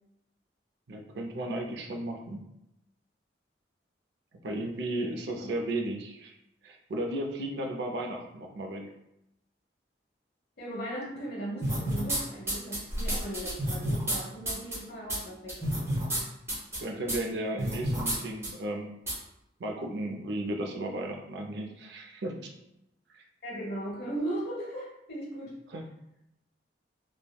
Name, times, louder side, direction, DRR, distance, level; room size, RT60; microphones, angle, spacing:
voice 1, 0.9-2.4 4.4-6.3 6.6-8.9 16.8-18.9 19.6-22.5 23.1-23.2 25.7-25.8, right 1 dB, 75° right, 2 dB, 0.5 m, -34 dB
voice 2, 10.6-15.5 23.4-25.5, right 1 dB, 60° left, -4 dB, 1.0 m, -37 dB
sound 1, 11.6-12.2 12.5-14.2 14.5-14.8 15.1-15.2 15.5-16.2 16.5-16.8 17.1-17.2 17.6-18.2 18.4-18.5 19.1-19.2, right 1 dB, 15° right, 0.8 m, -29 dB
3.2 x 2.1 x 2.2 m, 0.85 s
head